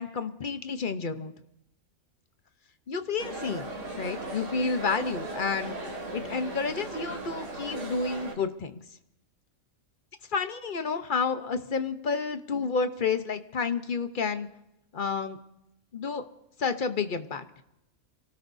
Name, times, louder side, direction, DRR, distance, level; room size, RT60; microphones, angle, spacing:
voice 1, 0.0-1.3 2.9-3.7 4.0-5.7 6.1-8.8 10.3-14.5 14.9-15.4 15.9-16.2 16.6-17.4, left 5 dB, 45° left, 9 dB, 1.0 m, -30 dB
sound 1, 3.2-8.3, right 2 dB, 70° right, 2.6 m, -37 dB
27.5 x 18.0 x 2.7 m, 0.86 s
omnidirectional pair, 1.4 m